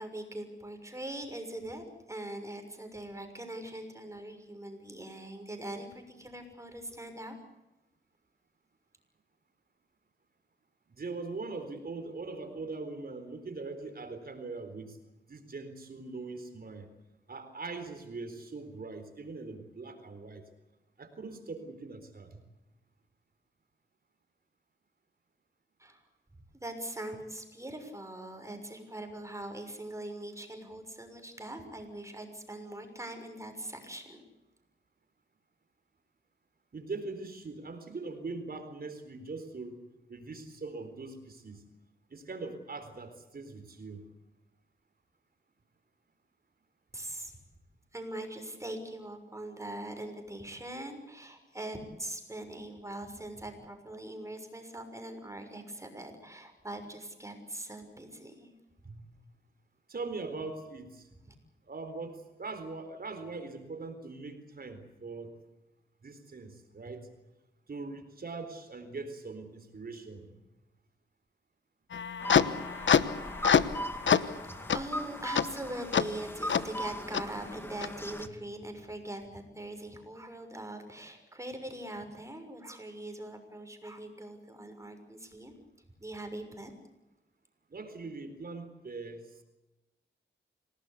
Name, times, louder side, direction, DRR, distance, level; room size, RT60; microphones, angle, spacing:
voice 1, 0.0-7.4 25.8-26.0 26.5-34.2 46.9-47.4 47.9-58.5 74.0-85.5 86.0-86.7, right 1 dB, 15° right, 6 dB, 6.4 m, -42 dB
voice 2, 10.9-15.0 15.3-16.9 17.3-20.4 21.0-22.4 36.7-39.8 40.1-41.6 42.1-44.0 58.8-59.0 59.9-61.1 61.7-65.3 66.0-67.1 67.7-70.3 78.2-78.3 87.7-89.4, right 3 dB, 50° right, 7 dB, 4.0 m, -41 dB
sound 1, 71.9-73.8 74.1-74.3 74.7-74.8 75.3-75.4 75.9-76.0 76.5-76.6 77.1-77.2 77.8-77.9, left 7 dB, 75° left, 1.1 m, -25 dB
sound 2, 72.2-78.3, equal, 10° left, 2.4 m, -39 dB
27.0 x 18.5 x 8.4 m, 1.0 s
wide cardioid pair, 90°, 19 cm